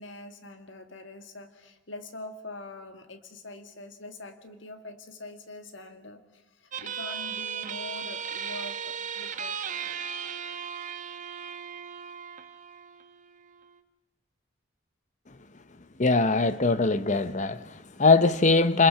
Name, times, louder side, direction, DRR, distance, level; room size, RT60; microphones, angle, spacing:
voice 1, 0.0-9.6, left 2 dB, 70° left, 1.9 m, -44 dB
sound 1, 6.7-13.7, right 7 dB, 40° right, 1.1 m, -37 dB
voice 2, 16.0-18.9, left 3 dB, 40° left, 0.9 m, -22 dB
28.5 x 21.5 x 5.8 m
head